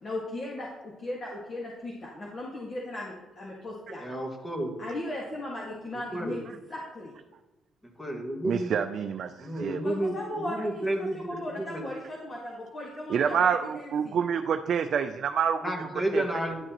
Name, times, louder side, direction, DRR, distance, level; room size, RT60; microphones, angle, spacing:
voice 1, 0.0-4.0 4.8-6.4 6.7-7.1 9.8-14.2, left 1 dB, 40° left, -3 dB, 1.7 m, -37 dB
voice 2, 4.0-5.0 5.9-6.5 8.0-8.7 9.4-11.9 15.6-16.6, right 1 dB, 15° left, 1 dB, 1.8 m, -32 dB
voice 3, 8.4-9.8 13.1-15.9 16.1-16.3, right 7 dB, 60° right, 7 dB, 0.4 m, -27 dB
11.0 x 6.3 x 3.0 m, 1.1 s
cardioid pair, 90°, 0 cm